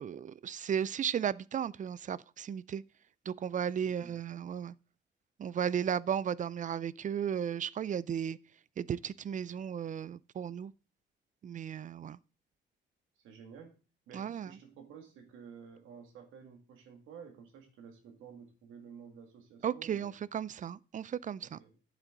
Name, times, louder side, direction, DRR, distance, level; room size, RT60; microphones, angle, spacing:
voice 1, 0.0-2.8 3.3-4.7 5.4-8.4 8.8-10.7 11.4-12.2 14.1-14.5 19.6-21.6, right 8 dB, 40° right, 0.4 m, -35 dB
voice 2, 3.8-4.1 13.2-13.7 14.1-20.1 21.4-21.7, right 7 dB, 90° right, 2.2 m, -52 dB
9.1 x 7.5 x 3.9 m
cardioid pair, 90°, 20 cm